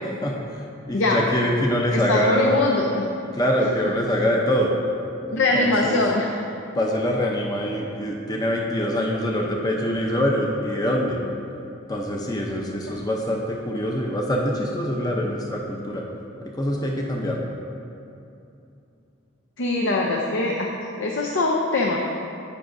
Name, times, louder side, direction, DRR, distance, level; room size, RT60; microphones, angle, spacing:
voice 1, 0.9-2.6 3.3-4.8 5.3-6.0 6.8-11.2 11.9-16.0 16.6-17.4, equal, 20° left, -1 dB, 0.6 m, -24 dB
voice 2, 1.9-3.0 5.3-6.4 19.6-20.7 21.0-22.0, left 2 dB, 70° left, -1 dB, 0.6 m, -22 dB
15.0 x 5.9 x 2.6 m, 2.7 s
head